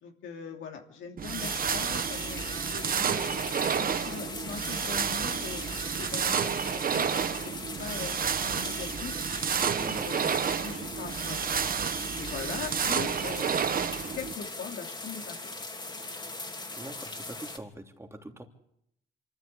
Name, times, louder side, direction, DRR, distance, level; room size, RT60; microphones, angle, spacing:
voice 1, 0.0-3.4 3.7-5.6 5.9-7.4 7.8-9.2 9.6-10.3 10.6-11.4 12.1-13.8 14.1-15.5, left 6 dB, 75° left, 2 dB, 3.0 m, -41 dB
sound 1, 1.2-14.3, right 7 dB, 45° right, 1.1 m, -30 dB
sound 2, 1.4-17.6, left 2 dB, 20° left, 3.2 m, -40 dB
voice 2, 16.7-18.4, right 1 dB, 15° right, 4 dB, 3.1 m, -43 dB
25.5 x 14.5 x 8.5 m, 0.78 s
cardioid pair, 90°, 20 cm